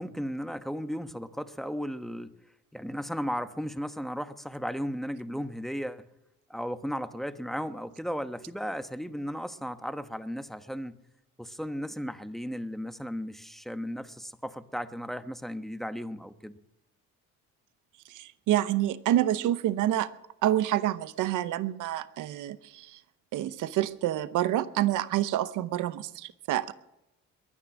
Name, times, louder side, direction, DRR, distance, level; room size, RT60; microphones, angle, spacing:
voice 1, 0.0-2.3 2.7-6.1 6.5-11.0 11.4-16.6, equal, ahead, 1.0 m, -35 dB
voice 2, 18.1-20.1 20.4-23.0 23.3-26.7, right 13 dB, 85° right, 0.8 m, -28 dB
22.0 x 9.9 x 6.1 m
cardioid pair, 90°, 30 cm